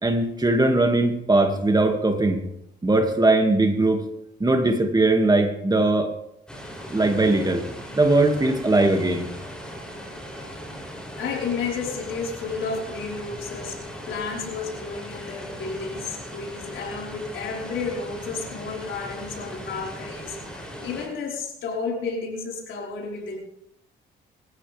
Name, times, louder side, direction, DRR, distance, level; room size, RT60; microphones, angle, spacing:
voice 1, 0.0-2.4 2.8-4.0 4.4-6.1 6.9-7.6 8.0-9.3, right 2 dB, 20° right, 4 dB, 2.4 m, -20 dB
sound 1, 6.5-21.1, equal, 5° left, 7.9 m, -38 dB
voice 2, 11.2-23.4, left 4 dB, 75° left, -2 dB, 5.0 m, -32 dB
24.5 x 15.5 x 3.6 m, 0.78 s
cardioid pair, 90°, 20 cm